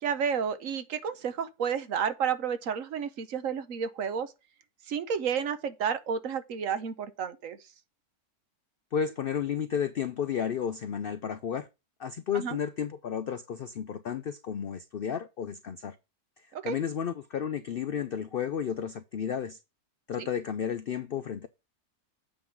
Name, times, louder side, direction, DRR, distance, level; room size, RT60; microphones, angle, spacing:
voice 1, 0.0-4.3 4.9-7.6 12.3-12.6 16.5-16.8, right 7 dB, 65° right, 1.1 m, -31 dB
voice 2, 8.9-11.7 12.0-16.0 16.4-19.6 20.1-21.5, left 8 dB, 70° left, 0.5 m, -32 dB
8.6 x 3.7 x 5.7 m
omnidirectional pair, 1.6 m